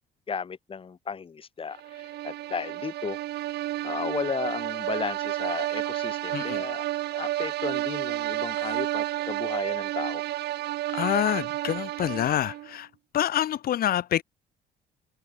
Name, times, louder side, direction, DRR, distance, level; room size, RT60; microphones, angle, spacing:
voice 1, 0.3-3.2 3.8-6.9 7.1-10.2, left 6 dB, 30° left, 4.9 m, -34 dB
sound 1, 1.8-12.7, right 15 dB, 75° right, 4.1 m, -31 dB
voice 2, 6.3-6.6 10.9-12.9 13.1-14.2, left 11 dB, 60° left, 4.9 m, -26 dB
cardioid pair, 110°, 17 cm